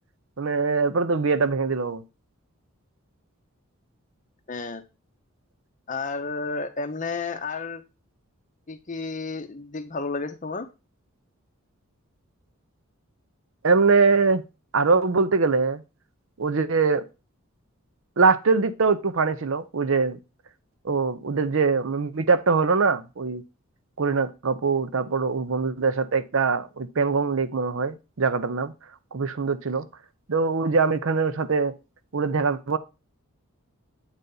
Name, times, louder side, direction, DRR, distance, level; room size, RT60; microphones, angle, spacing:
voice 1, 0.4-2.0 13.6-14.4 14.7-15.8 16.4-17.0 18.2-20.2 20.8-23.4 24.0-28.7 29.1-29.9 30.3-31.7 32.1-32.8, right 4 dB, 60° right, 0.6 m, -22 dB
voice 2, 4.5-4.8 5.9-7.8 8.7-10.7, left 4 dB, 35° left, 0.7 m, -31 dB
8.1 x 4.0 x 3.8 m
head